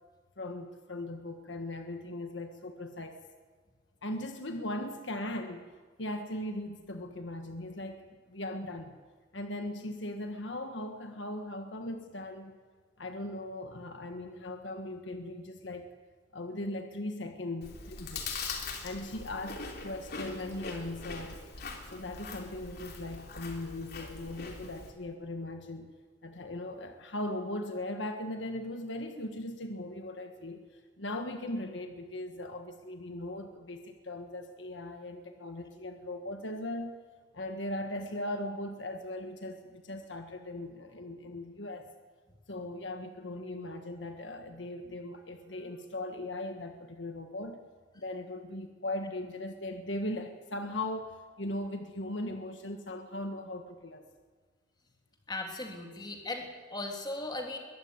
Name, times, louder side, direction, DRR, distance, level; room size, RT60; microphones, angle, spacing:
voice 1, 0.4-3.2 4.0-5.7 6.0-9.0 9.3-12.6 13.0-15.9 16.3-18.4 18.8-21.4 21.9-25.9 26.2-37.0 37.3-41.9 42.5-47.6 48.0-54.1, left 1 dB, 75° left, 6 dB, 1.6 m, -39 dB
Chewing mastication, 17.6-24.9, left 4 dB, 60° left, 3.4 m, -42 dB
voice 2, 55.3-57.6, left 2 dB, 25° left, 2 dB, 3.1 m, -38 dB
23.0 x 15.0 x 9.7 m, 1.5 s
head